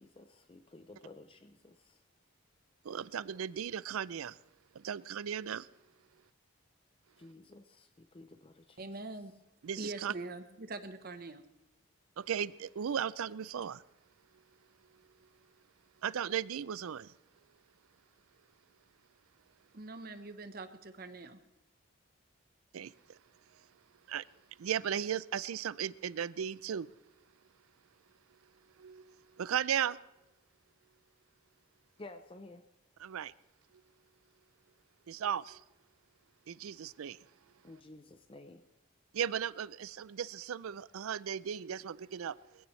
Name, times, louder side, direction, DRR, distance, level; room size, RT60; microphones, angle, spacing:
voice 1, 0.0-2.0 7.2-8.9 32.0-32.6 37.6-38.6, left 2 dB, 25° left, 0.5 m, -53 dB
voice 2, 2.9-4.3 4.8-5.7 9.6-10.1 12.2-13.8 16.0-17.1 22.7-22.9 24.1-24.2 24.6-26.9 28.8-29.0 29.4-30.0 33.0-33.3 35.1-35.6 36.5-37.2 39.1-42.4, right 8 dB, 85° right, 0.4 m, -36 dB
voice 3, 8.8-9.3 9.8-11.4 19.7-21.4, right 2 dB, 45° right, 0.9 m, -43 dB
21.5 x 15.5 x 3.2 m
head